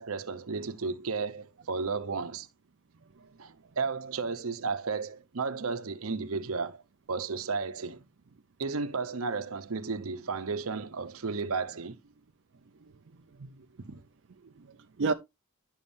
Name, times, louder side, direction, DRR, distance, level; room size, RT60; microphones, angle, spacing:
voice 1, 0.0-2.5 3.4-6.8 7.1-8.0 8.6-12.0 13.8-14.0, right 4 dB, 85° right, 0.8 m, -33 dB
voice 2, 12.8-13.7 14.4-15.1, right 4 dB, 60° right, 0.5 m, -34 dB
10.5 x 7.2 x 2.6 m
head